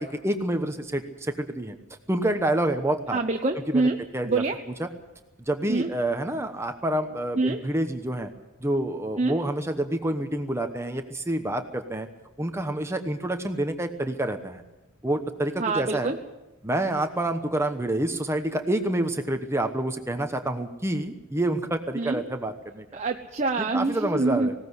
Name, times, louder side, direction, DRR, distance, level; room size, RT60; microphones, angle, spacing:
voice 1, 0.0-1.8 2.1-3.2 3.7-4.4 4.8-4.9 5.5-8.3 8.6-12.1 12.4-14.6 15.0-16.1 16.6-23.0 23.7-24.5, right 1 dB, 15° right, 6 dB, 1.0 m, -28 dB
voice 2, 3.1-4.0 4.2-4.6 5.7-5.9 7.4-7.6 9.2-9.4 15.6-16.2 21.9-22.2 22.9-24.5, right 3 dB, 35° right, 3 dB, 0.9 m, -25 dB
19.5 x 17.0 x 8.1 m, 1.0 s
head